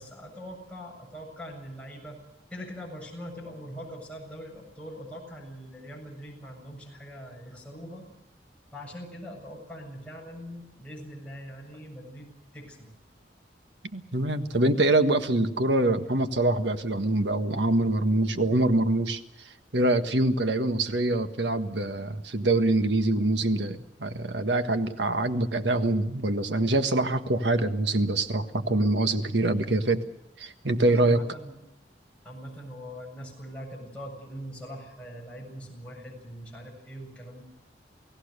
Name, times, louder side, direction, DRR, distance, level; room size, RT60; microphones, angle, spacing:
voice 1, 0.0-2.2 2.5-8.1 8.7-12.3 12.5-12.9 30.9-31.5 32.2-37.4, equal, 5° left, -2 dB, 7.7 m, -42 dB
voice 2, 13.9-19.2 19.7-30.0 30.4-31.2, right 2 dB, 75° right, 8 dB, 1.5 m, -24 dB
29.0 x 17.5 x 6.7 m, 0.88 s
head